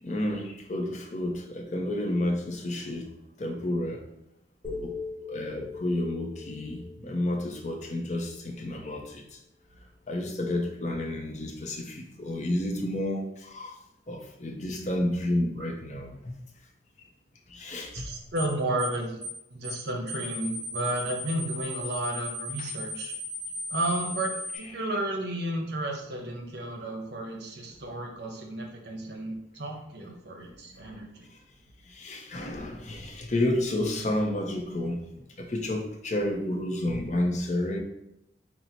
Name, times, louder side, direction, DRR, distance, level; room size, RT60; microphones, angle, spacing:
voice 1, 0.0-4.0 4.8-4.9 5.3-9.4 10.1-13.8 14.1-16.3 17.5-18.1 22.6-22.7 30.4-31.0 31.9-37.8, left 1 dB, 40° left, 2 dB, 0.6 m, -31 dB
sound 1, 4.6-8.7, left 4 dB, 10° left, 1.3 m, -41 dB
voice 2, 17.9-19.2 19.5-23.1 23.7-31.3, right 1 dB, 65° right, 1 dB, 0.8 m, -32 dB
sound 2, 18.4-18.5 18.8-19.0 19.2-19.4 19.6-19.8 20.1-24.6, right 1 dB, 35° right, 1.5 m, -37 dB
4.1 x 2.0 x 4.3 m, 0.85 s
head